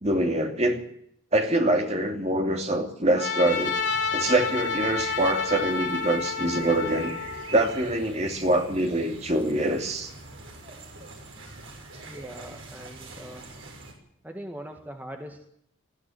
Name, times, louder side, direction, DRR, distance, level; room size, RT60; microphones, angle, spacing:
voice 1, 0.0-0.8 1.3-3.7 4.1-7.1 7.5-10.1, right 1 dB, 30° right, 4 dB, 2.8 m, -24 dB
Trumpet, 3.2-7.6, left 5 dB, 55° left, 4.3 m, -29 dB
sound 1, 3.5-13.9, right 3 dB, 70° right, 6.1 m, -44 dB
voice 2, 12.1-13.5 14.2-15.5, right 1 dB, 10° right, 4 dB, 1.7 m, -41 dB
20.5 x 14.5 x 9.3 m, 0.72 s
head